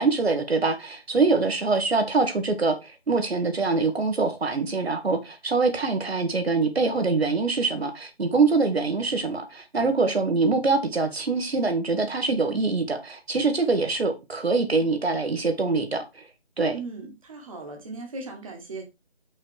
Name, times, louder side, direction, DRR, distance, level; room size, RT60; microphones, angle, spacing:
voice 1, 0.0-16.2 16.6-16.8, right 3 dB, 75° right, 1.7 m, -24 dB
voice 2, 16.7-18.8, right 3 dB, 35° right, 1.4 m, -38 dB
5.8 x 4.5 x 4.8 m
figure-of-eight pair, 170°, 31 cm